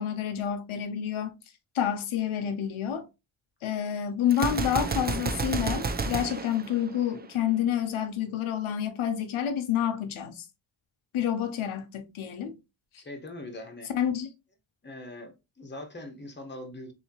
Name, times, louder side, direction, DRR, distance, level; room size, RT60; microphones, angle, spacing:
voice 1, 0.0-1.3 1.7-3.1 3.6-10.4 11.1-12.5 13.9-14.3, left 9 dB, 80° left, 0.7 m, -29 dB
Gunshot gunfire, 4.3-7.4, right 4 dB, 20° right, 0.4 m, -31 dB
voice 2, 13.0-13.9 14.8-16.9, left 1 dB, 20° left, 1.1 m, -42 dB
3.5 x 2.8 x 2.9 m
cardioid pair, 80°, 48 cm